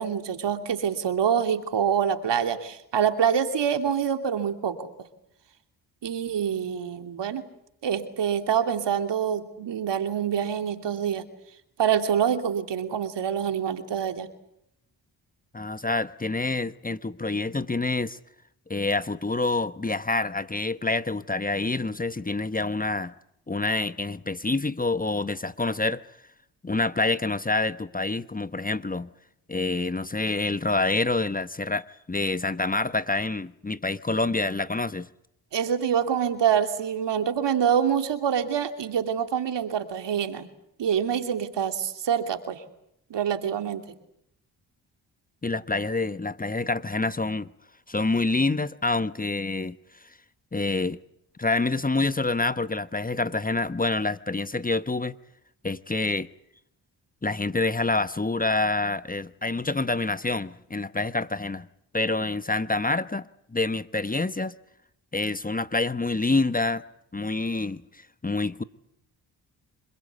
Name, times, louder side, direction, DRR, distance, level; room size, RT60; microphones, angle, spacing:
voice 1, 0.0-4.9 6.0-7.5 7.8-11.2 11.8-14.3 35.5-40.5 40.8-42.6 43.1-43.8, right 8 dB, 70° right, 2.9 m, -26 dB
voice 2, 15.5-18.2 18.7-23.1 23.5-26.0 26.6-29.1 29.5-35.1 45.4-47.5 47.9-49.8 50.5-51.0 51.4-55.1 55.6-56.3 57.2-61.7 61.9-63.2 63.5-64.6 65.1-66.8 67.1-68.6, left 3 dB, 20° left, 1.1 m, -27 dB
26.0 x 21.0 x 8.3 m
supercardioid pair, 50°, 43 cm